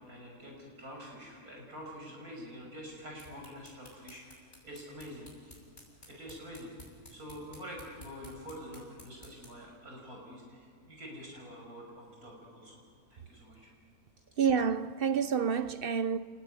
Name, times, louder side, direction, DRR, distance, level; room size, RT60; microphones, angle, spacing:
voice 1, 0.0-5.6 6.1-12.8 13.1-13.7, equal, 75° right, 6.6 m, -47 dB
sound 1, 3.0-9.7, left 1 dB, 45° left, 7.8 m, -55 dB
voice 2, 14.4-16.2, right 6 dB, 50° right, 0.8 m, -28 dB
29.5 x 20.0 x 9.8 m
omnidirectional pair, 1.6 m